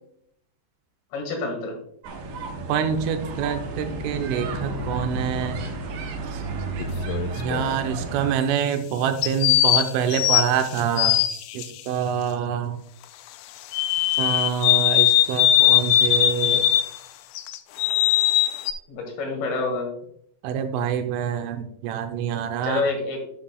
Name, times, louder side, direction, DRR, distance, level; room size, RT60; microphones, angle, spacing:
voice 1, 1.1-1.8 18.9-19.9 22.6-23.2, left 3 dB, 60° left, 2 dB, 3.2 m, -27 dB
sound 1, 2.0-8.4, right 2 dB, 65° right, 2.9 m, -32 dB
voice 2, 2.7-5.6 6.3-6.4 7.4-11.2 11.5-12.8 14.2-16.7 20.4-22.8, right 8 dB, 90° right, 7 dB, 3.2 m, -26 dB
sound 2, 6.8-7.8 9.2-11.7 13.7-17.0 17.4-18.7, left 13 dB, 85° left, 3.0 m, -20 dB
9.7 x 8.6 x 2.3 m, 0.70 s
omnidirectional pair, 5.6 m